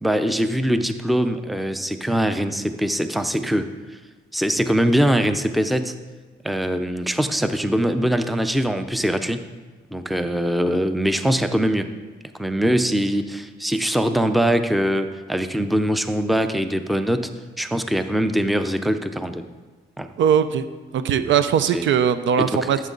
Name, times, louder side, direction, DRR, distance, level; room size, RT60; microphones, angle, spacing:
voice 1, 0.0-4.0 4.3-6.0 6.4-9.4 9.9-11.9 12.4-19.4 20.0-20.1 21.7-21.9 22.4-22.7, equal, ahead, 9 dB, 0.6 m, -22 dB
voice 2, 20.2-20.6 20.9-22.8, right 8 dB, 70° right, 12 dB, 0.6 m, -19 dB
13.0 x 7.4 x 3.9 m, 1.3 s
cardioid pair, 90°, 20 cm